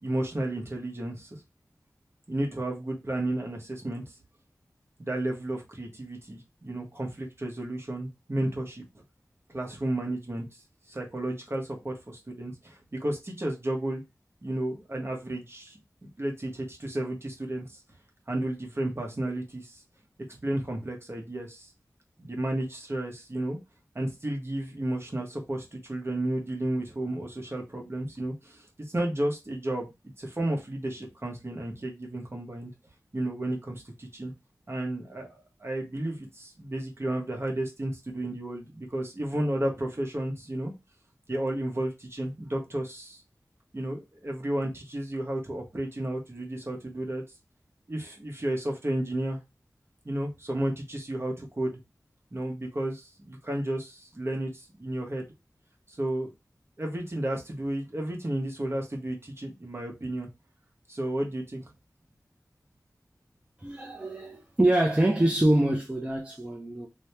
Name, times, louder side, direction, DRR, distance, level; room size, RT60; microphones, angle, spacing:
voice 1, 0.0-1.3 2.3-4.0 5.0-9.0 9.5-10.5 10.9-14.0 14.4-15.8 16.2-17.8 18.3-19.7 20.4-21.7 22.2-23.6 23.9-29.9 30.2-32.7 33.1-34.3 34.7-40.7 41.3-43.2 43.7-47.2 47.9-49.4 50.0-51.8 52.3-55.3 55.9-56.3 56.8-60.3 60.9-61.6, right 1 dB, 40° right, 1.4 m, -32 dB
voice 2, 63.6-66.9, right 1 dB, 15° right, 0.8 m, -25 dB
3.0 x 2.9 x 3.3 m
wide cardioid pair, 55°, 6 cm